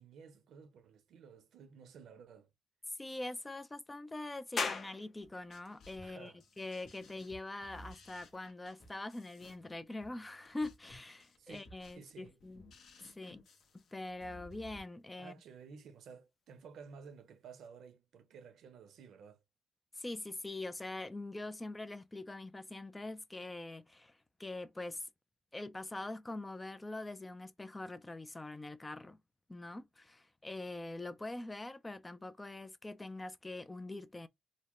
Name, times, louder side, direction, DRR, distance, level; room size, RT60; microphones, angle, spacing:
voice 1, 0.0-2.5 6.0-6.4 11.4-11.6 11.9-12.4 15.2-19.4, right 6 dB, 70° right, 0.8 m, -54 dB
voice 2, 3.0-12.6 13.0-13.4 13.7-15.3 19.9-25.1 25.5-29.2 29.5-34.3, left 2 dB, 15° left, 0.4 m, -44 dB
sound 1, 4.6-17.7, left 4 dB, 45° left, 0.9 m, -48 dB
sound 2, 5.2-14.8, left 1 dB, 70° left, 1.2 m, -57 dB
4.0 x 2.1 x 3.0 m
cardioid pair, 90°, 0 cm